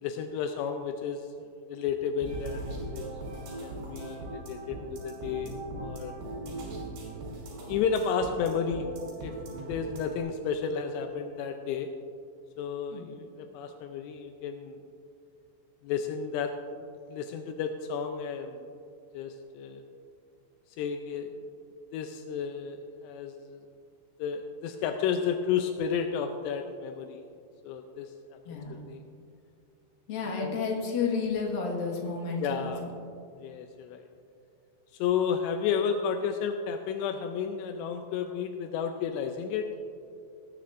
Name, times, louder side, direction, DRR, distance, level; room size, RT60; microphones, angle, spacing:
voice 1, 0.0-3.0 3.6-6.1 7.7-8.9 9.2-11.9 12.6-14.8 15.8-16.5 17.1-18.7 19.1-19.8 20.8-21.3 21.9-23.7 24.2-27.2 27.7-28.6 28.9-29.0 30.2-30.6 32.4-32.8 33.4-34.0 35.0-39.7, left 7 dB, 85° left, 5 dB, 2.4 m, -32 dB
sound 1, 2.2-10.2, right 2 dB, 60° right, 4.8 m, -39 dB
voice 2, 28.5-28.8 30.1-33.0, left 4 dB, 60° left, -1 dB, 2.8 m, -31 dB
18.5 x 11.0 x 2.5 m, 2.4 s
omnidirectional pair, 5.5 m